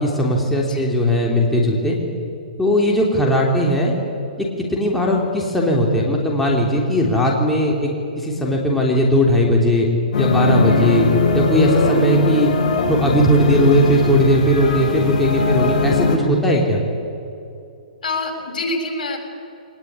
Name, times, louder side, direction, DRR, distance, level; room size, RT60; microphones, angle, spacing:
voice 1, 0.0-2.0 2.6-4.0 4.4-7.9 8.2-9.9 10.2-11.1 11.3-12.5 12.9-16.8, equal, 5° left, -2 dB, 3.4 m, -18 dB
sound 1, 10.1-16.2, left 3 dB, 50° left, 6.6 m, -19 dB
voice 2, 10.7-11.0 18.0-19.2, left 2 dB, 70° left, 3 dB, 7.0 m, -26 dB
23.0 x 20.0 x 9.7 m, 2.6 s
hypercardioid pair, 145°, 5 cm